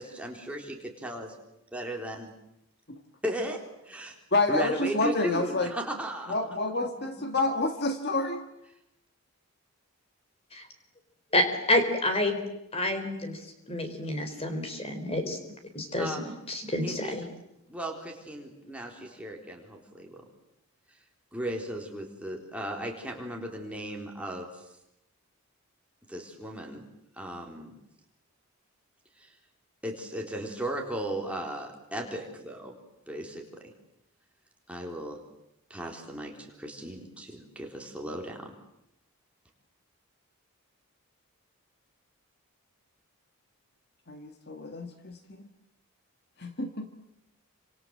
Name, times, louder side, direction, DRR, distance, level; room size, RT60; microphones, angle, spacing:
voice 1, 0.0-1.3 1.7-2.3 3.2-4.2 4.5-6.4 16.0-16.4 16.8-17.3 17.7-20.2 21.3-24.6 26.1-26.8 27.2-27.8 29.2-29.3 29.8-32.8 33.1-33.4 34.7-35.2 35.7-38.5, right 1 dB, 5° right, 1 dB, 3.9 m, -36 dB
voice 2, 4.3-5.7 6.3-8.4 44.1-45.2 46.4-46.9, left 2 dB, 45° left, 7 dB, 1.8 m, -28 dB
voice 3, 11.3-12.4 12.7-13.4 13.7-15.4 15.7-17.3, left 1 dB, 25° left, 7 dB, 4.2 m, -28 dB
29.0 x 26.5 x 7.8 m, 0.83 s
head